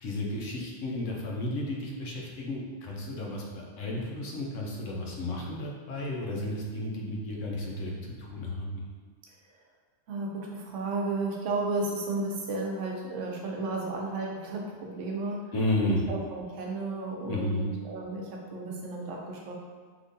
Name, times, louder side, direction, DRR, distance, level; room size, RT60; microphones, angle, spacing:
voice 1, 0.0-8.8 15.5-16.0 17.2-17.6, left 1 dB, 80° left, -2 dB, 1.0 m, -33 dB
voice 2, 10.1-15.5 15.9-19.5, right 3 dB, 80° right, -1 dB, 0.9 m, -33 dB
3.6 x 2.9 x 2.6 m, 1.5 s
omnidirectional pair, 1.3 m